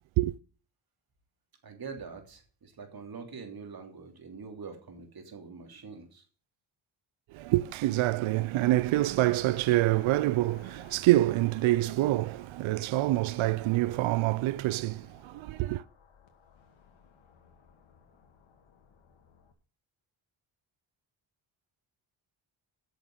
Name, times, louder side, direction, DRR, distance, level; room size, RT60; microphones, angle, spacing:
voice 1, 1.6-6.2, right 5 dB, 50° right, 3.1 m, -44 dB
voice 2, 7.3-15.8, right 16 dB, 80° right, 0.6 m, -26 dB
sound 1, 8.6-19.5, left 6 dB, 70° left, 2.2 m, -58 dB
9.1 x 6.6 x 7.9 m
cardioid pair, 90°, 47 cm